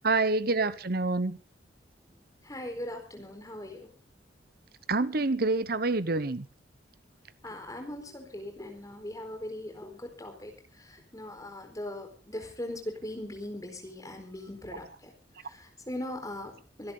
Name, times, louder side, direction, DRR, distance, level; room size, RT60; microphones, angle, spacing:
voice 1, 0.0-1.4 4.9-6.5, right 3 dB, 55° right, 1.0 m, -27 dB
voice 2, 2.4-3.9 7.4-15.1 15.4-16.9, left 1 dB, 20° left, 4.3 m, -40 dB
24.5 x 11.5 x 3.9 m
head